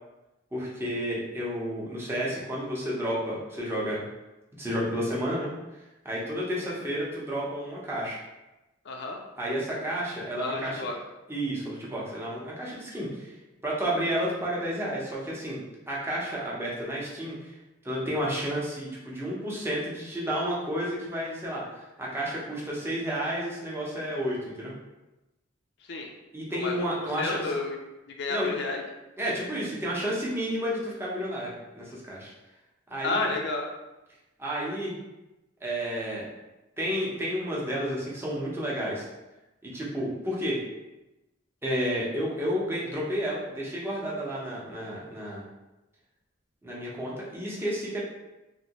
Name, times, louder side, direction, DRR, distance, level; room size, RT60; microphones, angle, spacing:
voice 1, 0.5-4.0 4.6-5.5 6.0-8.2 9.4-10.8 11.3-13.3 13.6-17.5 17.8-24.7 26.3-27.5 28.3-28.5 29.2-32.3 32.9-33.3 34.4-34.9 35.6-36.2 36.8-39.0 39.6-40.6 41.6-45.4 46.6-48.0, equal, 10° right, -6 dB, 0.7 m, -31 dB
voice 2, 8.8-9.2 10.4-11.0 25.9-26.1 26.5-27.8 28.1-28.8 33.0-33.7, left 3 dB, 60° left, 2 dB, 0.5 m, -31 dB
3.1 x 2.7 x 2.9 m, 1.0 s
head